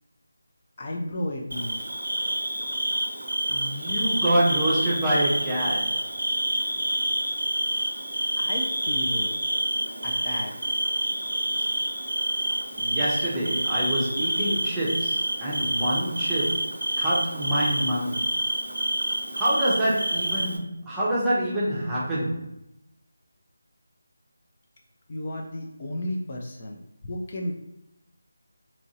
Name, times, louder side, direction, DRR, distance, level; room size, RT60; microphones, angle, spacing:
voice 1, 0.8-1.8 8.4-9.4 10.0-10.5 25.1-27.5, left 1 dB, 35° left, 0 dB, 0.4 m, -33 dB
Bird / Cricket, 1.5-20.6, right 1 dB, 80° right, 0.5 m, -28 dB
voice 2, 3.5-6.1 12.8-18.4 19.3-22.5, right 1 dB, 10° right, -8 dB, 0.6 m, -26 dB
2.9 x 2.5 x 2.7 m, 0.83 s
figure-of-eight pair, 160°, 0 cm